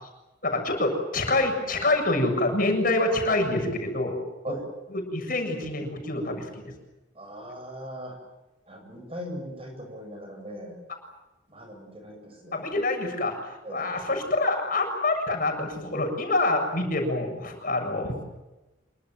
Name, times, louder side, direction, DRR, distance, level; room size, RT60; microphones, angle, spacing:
voice 1, 0.4-4.2 4.9-6.5 12.5-18.2, left 2 dB, 45° left, 3 dB, 7.3 m, -26 dB
voice 2, 7.1-8.2 8.7-10.8 11.5-12.7 13.6-13.9, equal, 30° right, 4 dB, 8.0 m, -39 dB
27.5 x 24.5 x 7.7 m, 1.0 s
head